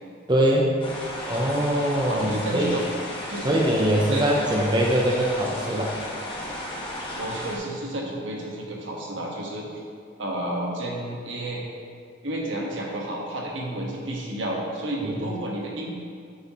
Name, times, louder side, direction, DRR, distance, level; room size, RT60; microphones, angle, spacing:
voice 1, 0.3-0.7 1.3-2.8 3.4-5.9 15.0-15.2, right 1 dB, 25° right, -2 dB, 0.7 m, -22 dB
sound 1, 0.8-7.6, left 1 dB, 25° left, 1.3 m, -34 dB
voice 2, 2.1-2.8 3.3-3.6 4.1-4.2 7.2-9.8 10.2-11.6 12.2-15.9, right 1 dB, 75° right, -2 dB, 1.5 m, -31 dB
8.8 x 8.0 x 3.0 m, 2.2 s
head